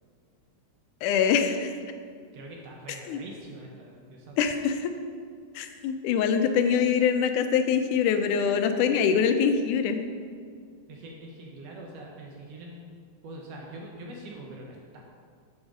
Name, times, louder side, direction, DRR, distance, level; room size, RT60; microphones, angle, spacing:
voice 1, 1.0-1.8 3.1-3.2 4.4-4.9 5.6-10.0, left 7 dB, 90° left, 8 dB, 2.1 m, -24 dB
voice 2, 2.3-4.4 10.9-12.9 13.2-15.0, right 1 dB, 70° right, -1 dB, 1.7 m, -43 dB
6.4 x 6.2 x 5.1 m, 2.1 s
omnidirectional pair, 3.5 m